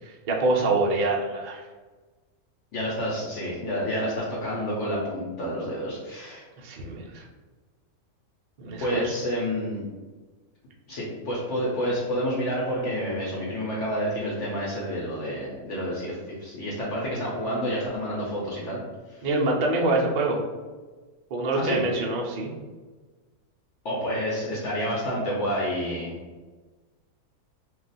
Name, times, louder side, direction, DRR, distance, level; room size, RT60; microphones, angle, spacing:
voice 1, 0.0-1.6 6.6-7.2 8.6-9.1 19.2-20.4 21.3-22.5, right 2 dB, 80° right, -1 dB, 0.4 m, -25 dB
voice 2, 2.7-6.5 8.8-9.8 10.9-18.8 19.1-19.3 21.6-21.8 23.8-26.2, equal, 60° left, -5 dB, 0.9 m, -29 dB
2.4 x 2.3 x 3.9 m, 1.3 s
omnidirectional pair, 1.6 m